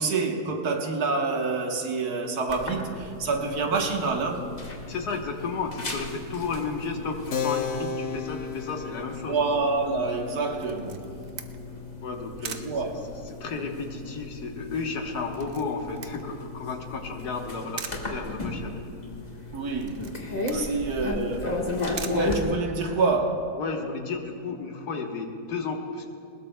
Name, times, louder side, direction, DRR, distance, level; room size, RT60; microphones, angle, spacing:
voice 1, 0.0-4.5 9.3-11.1 12.5-13.1 19.5-20.1 20.5-21.6 22.1-23.6, right 3 dB, 75° right, 1.8 m, -27 dB
sound 1, 2.5-22.4, left 2 dB, 30° left, 1.5 m, -36 dB
voice 2, 4.9-9.4 12.0-12.9 13.3-18.7 20.5-20.7 21.0-21.6 23.6-26.1, left 4 dB, 85° left, 1.8 m, -33 dB
Keyboard (musical), 7.3-13.4, left 6 dB, 55° left, 0.9 m, -36 dB
Camera, 10.6-23.1, right 7 dB, 55° right, 0.6 m, -44 dB
21.5 x 19.5 x 2.2 m
omnidirectional pair, 1.7 m